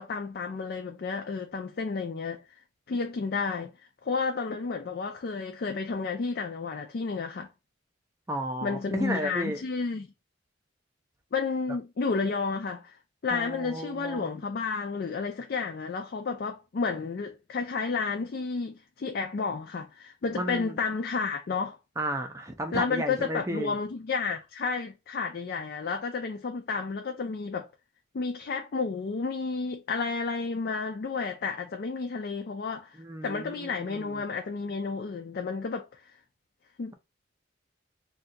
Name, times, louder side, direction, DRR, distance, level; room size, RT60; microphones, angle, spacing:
voice 1, 0.0-2.4 2.9-3.7 4.0-7.5 8.6-10.1 11.3-13.0 13.2-21.8 22.7-27.7 28.1-33.0 33.2-35.9 36.8-36.9, left 4 dB, 50° left, 0.4 m, -31 dB
voice 2, 8.3-9.6 13.3-14.3 20.4-20.8 22.0-23.8 33.0-34.2, right 1 dB, 15° right, 0.5 m, -33 dB
2.7 x 2.3 x 3.8 m
head